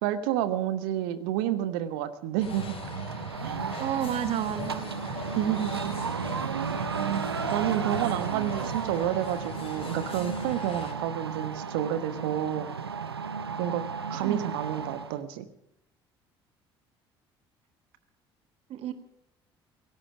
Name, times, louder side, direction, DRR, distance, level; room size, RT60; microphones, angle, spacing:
voice 1, 0.0-2.7 3.4-3.6 5.3-5.9 7.0-12.7 13.6-13.8 14.1-15.5, right 11 dB, 70° right, 12 dB, 1.3 m, -30 dB
sound 1, 2.4-10.9, left 6 dB, 45° left, 4.0 m, -42 dB
sound 2, 2.4-15.2, right 6 dB, 90° right, 0.7 m, -34 dB
voice 2, 3.8-4.9 14.2-14.5 18.7-18.9, right 10 dB, 55° right, 10 dB, 1.6 m, -31 dB
17.0 x 16.5 x 4.8 m, 0.78 s
figure-of-eight pair, 55°, 13 cm